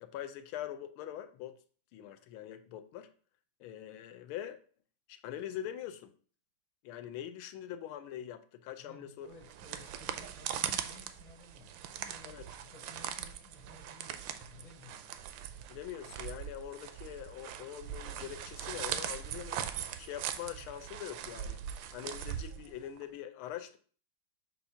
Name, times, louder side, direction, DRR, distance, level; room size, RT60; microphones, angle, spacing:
voice 1, 0.0-1.6 1.9-3.1 3.6-4.6 5.1-6.1 6.8-9.3 12.2-12.4 15.7-19.7 20.0-21.6 21.9-23.8, left 11 dB, 90° left, 9 dB, 1.5 m, -43 dB
voice 2, 8.8-15.2, left 3 dB, 30° left, 2 dB, 0.7 m, -56 dB
sound 1, 9.3-23.0, right 10 dB, 75° right, 1.2 m, -41 dB
7.0 x 2.6 x 5.6 m, 0.43 s
omnidirectional pair, 2.3 m